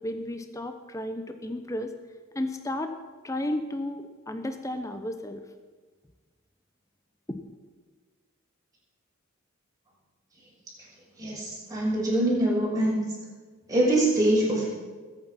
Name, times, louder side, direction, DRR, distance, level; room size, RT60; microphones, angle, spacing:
voice 1, 0.0-1.9 2.3-2.9 3.2-5.4 7.3-7.4, left 1 dB, 15° left, 7 dB, 0.8 m, -33 dB
voice 2, 11.2-13.0 13.7-14.7, right 1 dB, 15° right, -6 dB, 6.3 m, -24 dB
21.0 x 9.0 x 5.9 m, 1.4 s
head